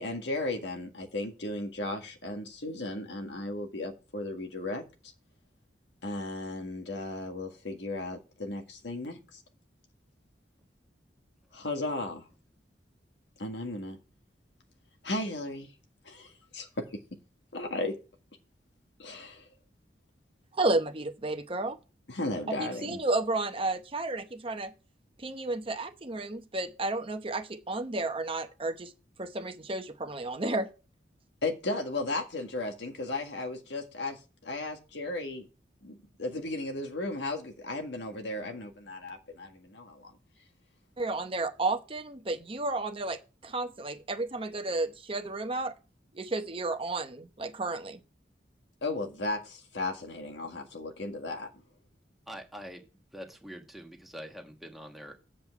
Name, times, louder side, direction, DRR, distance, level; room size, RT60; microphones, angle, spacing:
voice 1, 0.0-4.8 6.0-9.4 11.5-12.2 13.4-14.0 15.0-15.7 16.0-17.0 17.5-18.0 19.0-19.5 22.1-23.0 31.4-35.4 35.8-40.1 48.8-51.5, left 2 dB, 80° left, 1.7 m, -35 dB
voice 2, 20.6-21.8 22.6-24.7 25.2-28.9 29.2-30.7 41.0-43.2 43.4-45.7 46.2-48.0, right 2 dB, 30° right, 0.8 m, -32 dB
voice 3, 52.3-52.8 53.1-55.1, equal, ahead, 1.4 m, -44 dB
7.8 x 7.4 x 4.6 m
head